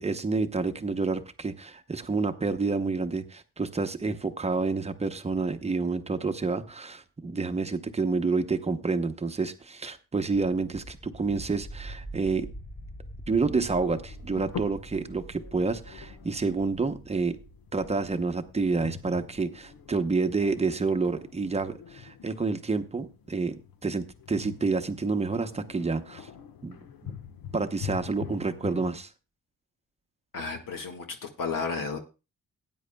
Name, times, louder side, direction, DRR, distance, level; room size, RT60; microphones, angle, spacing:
voice 1, 0.0-12.5 13.3-17.4 17.7-26.3 26.6-27.1 27.5-29.1, right 4 dB, 20° right, 8 dB, 0.8 m, -29 dB
sound 1, 10.3-21.0, right 1 dB, 30° left, 3.7 m, -45 dB
sound 2, 13.4-28.9, left 8 dB, 90° left, 1.2 m, -45 dB
voice 2, 30.3-32.0, left 4 dB, 70° left, 4 dB, 1.8 m, -33 dB
18.0 x 9.4 x 2.2 m, 0.29 s
wide cardioid pair, 160°, 34 cm